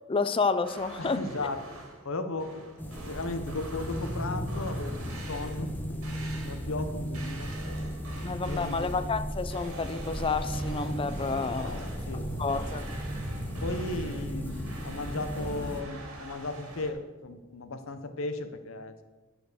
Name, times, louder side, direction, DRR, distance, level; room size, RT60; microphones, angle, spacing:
voice 1, 0.1-1.2 8.2-11.8 12.4-12.9, left 4 dB, 25° left, 12 dB, 0.4 m, -30 dB
sound 1, 0.6-2.1 2.4-5.8 6.0-6.8 7.1-9.2 9.5-12.2 12.5-16.9, right 2 dB, 85° right, 2.0 m, -45 dB
voice 2, 1.0-1.6 2.0-2.7 3.0-6.0 6.4-7.5 8.1-8.9 11.6-12.3 13.6-19.0, left 2 dB, 65° left, 9 dB, 0.8 m, -36 dB
sound 2, 2.8-15.8, equal, 10° left, 0.9 m, -35 dB
sound 3, 10.8-16.4, right 1 dB, 60° right, 2.1 m, -49 dB
11.0 x 4.4 x 6.7 m, 1.3 s
head